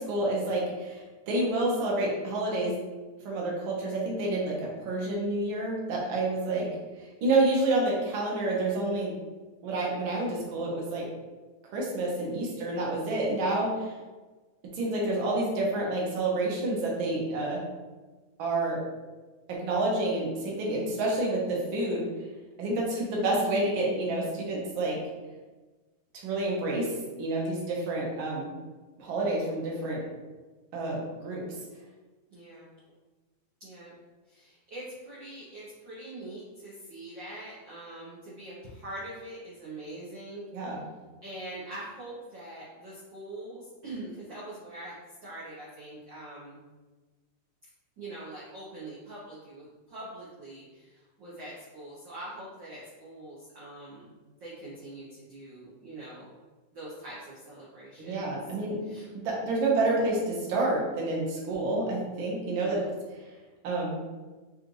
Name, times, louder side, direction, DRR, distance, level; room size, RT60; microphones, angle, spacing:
voice 1, 0.0-2.7 3.2-6.7 7.2-9.1 9.6-11.0 11.7-13.9 14.7-17.6 18.4-18.8 19.5-22.1 22.6-25.0 26.2-26.9 27.2-28.5 29.0-30.0 30.7-31.4 40.5-40.8 58.0-58.8 59.1-62.8 63.1-63.2 63.6-64.0, right 2 dB, 60° right, -3 dB, 1.4 m, -28 dB
voice 2, 32.3-32.7 33.6-33.9 34.3-40.5 41.2-46.6 48.0-54.1 54.4-56.3 56.7-58.4 58.8-59.1 62.4-62.9, right 1 dB, 80° right, -8 dB, 1.0 m, -43 dB
6.1 x 2.5 x 3.1 m, 1.3 s
omnidirectional pair, 3.4 m